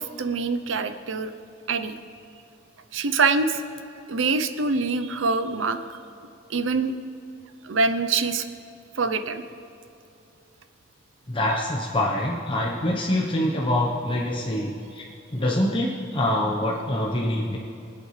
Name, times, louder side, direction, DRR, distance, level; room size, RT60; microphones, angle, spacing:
voice 1, 0.0-1.3 1.7-1.9 2.9-3.6 4.1-5.8 6.5-6.9 7.6-8.5 9.0-9.4, right 4 dB, 85° right, 9 dB, 0.7 m, -24 dB
voice 2, 11.3-17.6, left 1 dB, 25° left, -3 dB, 1.0 m, -25 dB
24.0 x 8.4 x 3.3 m, 2.7 s
head